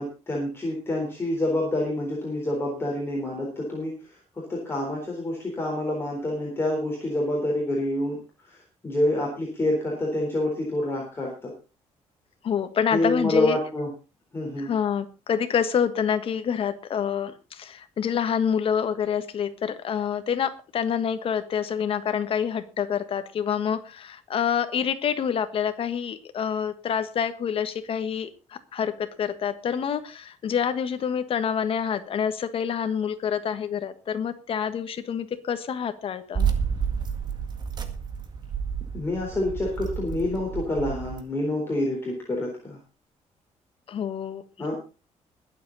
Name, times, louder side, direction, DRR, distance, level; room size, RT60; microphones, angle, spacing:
voice 1, 0.0-3.9 4.3-8.2 8.4-8.6 8.8-11.5 12.9-13.9 14.3-14.7 38.9-42.8 44.6-44.8, left 1 dB, 20° left, -2 dB, 3.9 m, -27 dB
voice 2, 12.4-13.6 14.6-36.5 43.9-44.4, left 7 dB, 50° left, 10 dB, 1.5 m, -27 dB
sound 1, 36.3-41.2, right 7 dB, 35° right, 1.9 m, -30 dB
21.5 x 7.9 x 4.1 m, 0.32 s
cardioid pair, 150°, 12 cm